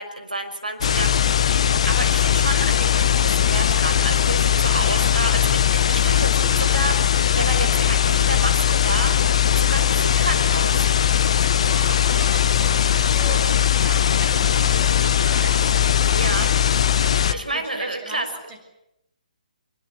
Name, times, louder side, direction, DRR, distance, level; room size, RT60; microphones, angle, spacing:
voice 1, 0.0-10.9 16.2-16.6 17.3-18.3, right 2 dB, 75° right, 6 dB, 5.8 m, -30 dB
sound 1, 0.8-17.3, left 9 dB, 45° left, 1.1 m, -19 dB
voice 2, 11.4-15.8 17.2-18.6, right 2 dB, 20° right, 2 dB, 7.0 m, -38 dB
24.5 x 23.0 x 8.5 m, 0.82 s
figure-of-eight pair, 135°, 4 cm